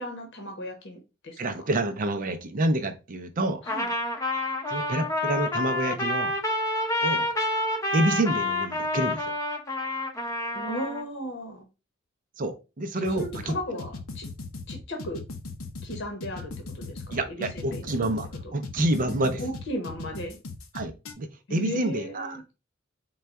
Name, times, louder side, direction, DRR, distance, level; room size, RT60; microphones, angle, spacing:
voice 1, 0.0-1.4 3.6-3.9 10.5-11.7 13.0-14.3 14.7-15.2 15.8-18.1 18.4-18.5 19.4-20.4 21.5-22.4, equal, 60° left, 0.9 m, -35 dB
voice 2, 1.4-3.6 4.7-6.3 7.0-7.3 7.9-9.3 12.4-13.5 17.1-19.4 20.7-22.4, right 1 dB, 40° right, 0.5 m, -28 dB
Trumpet, 3.7-11.0, left 1 dB, 15° left, 0.7 m, -28 dB
sound 1, 13.0-21.1, left 3 dB, 90° left, 0.7 m, -38 dB
3.9 x 2.3 x 4.4 m
head